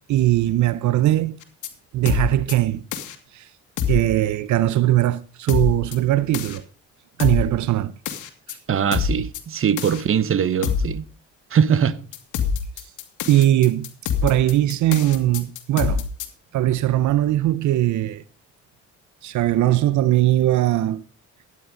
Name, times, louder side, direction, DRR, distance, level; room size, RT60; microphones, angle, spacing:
voice 1, 0.1-1.4 1.9-2.8 3.3-3.5 3.9-6.6 7.2-7.9 8.5-8.6 12.8-12.9 13.3-13.9 14.2-16.1 16.5-18.2 19.2-21.0, right 14 dB, 75° right, 0.6 m, -20 dB
sound 1, 1.4-1.7 2.1-2.5 2.9-3.1 3.8-4.1 5.5-6.0 6.3-6.6 7.2-7.5 8.1-8.5 8.9-9.4 9.8-10.0 10.6-10.9 12.1-16.3, left 6 dB, 80° left, 2.2 m, -25 dB
voice 2, 8.7-11.0 11.5-12.0, right 8 dB, 45° right, 1.0 m, -21 dB
12.5 x 10.0 x 5.0 m
cardioid pair, 90°, 30 cm